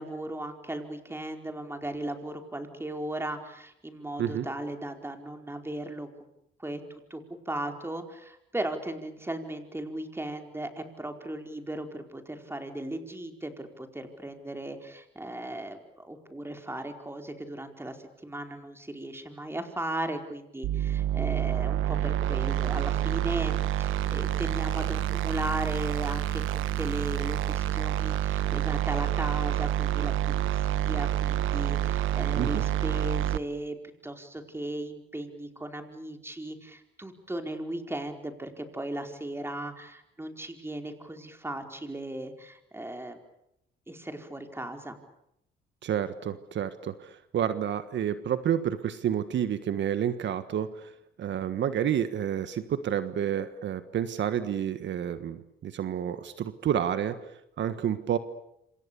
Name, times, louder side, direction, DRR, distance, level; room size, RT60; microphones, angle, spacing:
voice 1, 0.0-6.1 6.6-18.0 18.2-33.8 34.0-43.2 43.9-45.0, right 1 dB, 10° right, 5 dB, 4.7 m, -37 dB
sound 1, 20.6-33.4, right 12 dB, 85° right, 1.1 m, -28 dB
voice 2, 45.8-50.9 51.2-58.2, right 9 dB, 65° right, 11 dB, 1.5 m, -30 dB
27.5 x 26.5 x 7.0 m, 0.79 s
cardioid pair, 90°, 20 cm